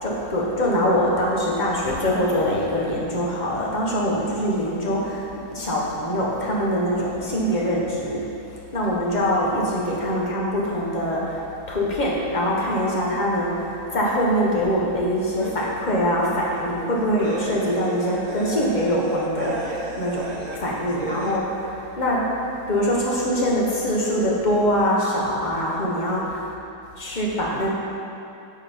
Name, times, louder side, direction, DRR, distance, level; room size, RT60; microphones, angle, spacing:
voice 1, 0.0-8.3 8.7-11.4 11.7-22.3 22.7-26.5 27.0-27.7, equal, 30° left, -4 dB, 1.2 m, -23 dB
sound 1, 15.4-21.4, right 2 dB, 70° right, 0.4 m, -34 dB
9.0 x 5.2 x 4.5 m, 2.7 s
omnidirectional pair, 1.7 m